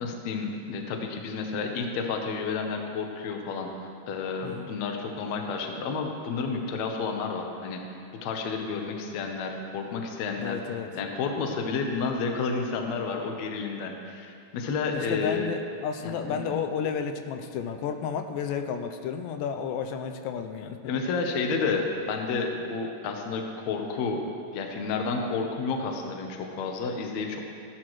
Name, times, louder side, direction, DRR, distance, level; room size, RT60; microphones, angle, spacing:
voice 1, 0.0-3.7 4.1-7.8 8.2-10.6 10.9-15.5 16.0-16.6 20.8-24.2 24.5-27.4, left 4 dB, 70° left, 3 dB, 1.9 m, -30 dB
voice 2, 10.4-10.9 14.9-20.9, left 7 dB, 85° left, 6 dB, 2.2 m, -32 dB
16.0 x 11.0 x 3.1 m, 2.5 s
omnidirectional pair, 4.0 m